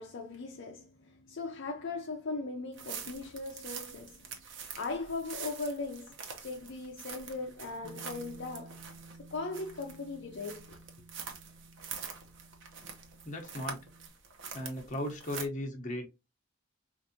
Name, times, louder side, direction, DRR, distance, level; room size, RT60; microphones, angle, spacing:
voice 1, 0.0-4.1 4.8-8.8 9.3-10.8, left 3 dB, 60° left, 0.6 m, -39 dB
sound 1, 2.7-15.4, right 6 dB, 65° right, 0.9 m, -45 dB
Bass guitar, 7.8-14.1, right 3 dB, 40° right, 0.5 m, -54 dB
voice 2, 13.2-13.8 14.5-16.1, left 1 dB, 40° left, 0.9 m, -36 dB
4.7 x 2.6 x 2.7 m
head